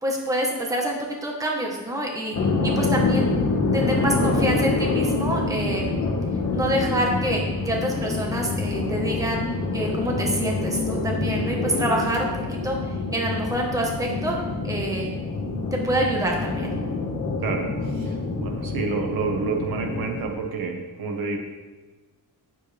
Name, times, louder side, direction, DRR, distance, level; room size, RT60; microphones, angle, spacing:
voice 1, 0.0-2.3 2.6-3.3 3.7-5.9 6.5-9.4 9.7-12.8 13.1-14.4 14.6-15.1 15.7-16.7, right 1 dB, 10° right, -1 dB, 1.4 m, -26 dB
sound 1, 2.3-20.2, left 3 dB, 45° left, 1.8 m, -26 dB
voice 2, 17.4-21.4, right 4 dB, 75° right, 2 dB, 1.6 m, -29 dB
17.0 x 7.6 x 3.5 m, 1.2 s
wide cardioid pair, 175°, 36 cm